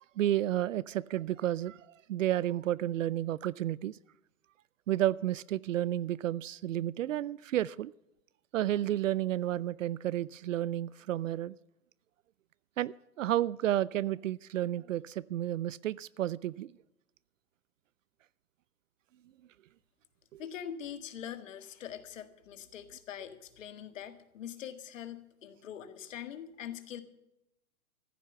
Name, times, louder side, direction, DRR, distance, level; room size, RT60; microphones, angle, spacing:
voice 1, 0.0-1.8 2.1-4.0 4.9-7.9 8.5-11.5 12.8-16.7 20.3-20.4, right 13 dB, 60° right, 0.5 m, -31 dB
voice 2, 20.4-27.0, left 9 dB, 60° left, 1.7 m, -43 dB
14.5 x 9.3 x 7.9 m
hypercardioid pair, 130°, 43 cm